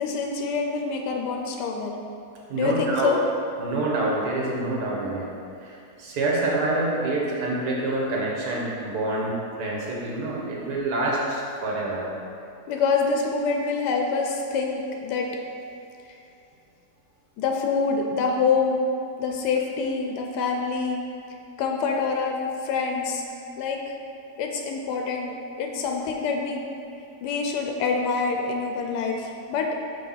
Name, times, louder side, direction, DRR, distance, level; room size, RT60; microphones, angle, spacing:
voice 1, 0.0-1.9 2.5-3.2 12.7-15.3 16.1-16.2 17.4-18.8 19.2-21.0 21.6-22.4 22.6-23.2 23.6-23.9 24.4-26.6 27.2-29.7, left 4 dB, 90° left, 1 dB, 1.2 m, -26 dB
voice 2, 2.5-3.1 3.6-5.2 5.6-9.3 9.6-12.1, right 2 dB, 75° right, -4 dB, 1.6 m, -26 dB
5.4 x 3.3 x 5.6 m, 2.6 s
omnidirectional pair, 1.7 m